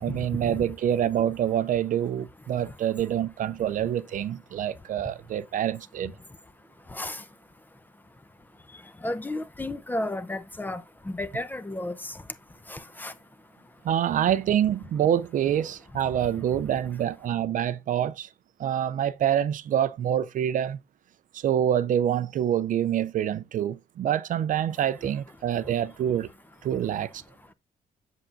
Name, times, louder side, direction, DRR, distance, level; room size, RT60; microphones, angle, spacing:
voice 1, 0.0-6.1 13.8-18.3 18.6-20.8 21.3-26.3 26.6-27.1, right 10 dB, 60° right, 0.5 m, -26 dB
voice 2, 9.0-10.8 11.1-11.9 12.7-13.1, left 1 dB, 10° left, 0.7 m, -32 dB
7.7 x 7.3 x 2.6 m
cardioid pair, 120°, 15 cm